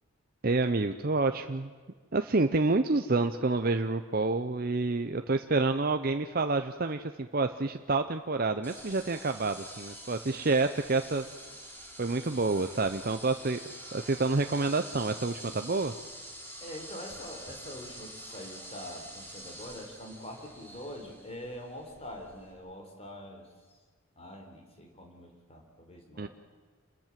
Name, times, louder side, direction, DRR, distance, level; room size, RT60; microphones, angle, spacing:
voice 1, 0.4-1.7 2.1-11.3 12.0-13.6 13.9-15.9 26.2-26.3, right 3 dB, 40° right, 7 dB, 0.7 m, -28 dB
sound 1, 8.6-22.5, equal, 10° left, 3.5 m, -46 dB
voice 2, 16.6-23.5 24.2-26.3, equal, 25° left, 2 dB, 4.0 m, -44 dB
27.5 x 21.0 x 7.5 m, 1.5 s
head